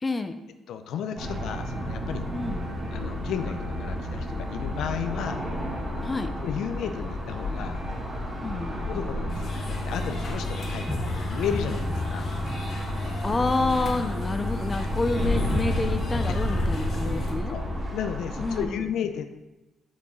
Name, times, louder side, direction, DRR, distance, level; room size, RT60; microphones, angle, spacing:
voice 1, 0.0-0.4 2.3-2.7 6.0-6.3 8.4-8.8 13.2-17.6 18.4-18.8, left 3 dB, 25° left, 9 dB, 0.6 m, -28 dB
voice 2, 0.7-2.2 2.9-5.4 6.4-7.8 8.8-12.3 16.2-16.3 17.5-19.3, left 8 dB, 80° left, 8 dB, 0.5 m, -33 dB
sound 1, 1.2-17.8, left 1 dB, ahead, 2.6 m, -34 dB
sound 2, 1.2-18.7, equal, 15° right, 2.7 m, -33 dB
sound 3, 9.3-17.3, left 1 dB, 50° left, 1.6 m, -35 dB
6.5 x 6.0 x 4.3 m, 1.0 s
cardioid pair, 90°, 0 cm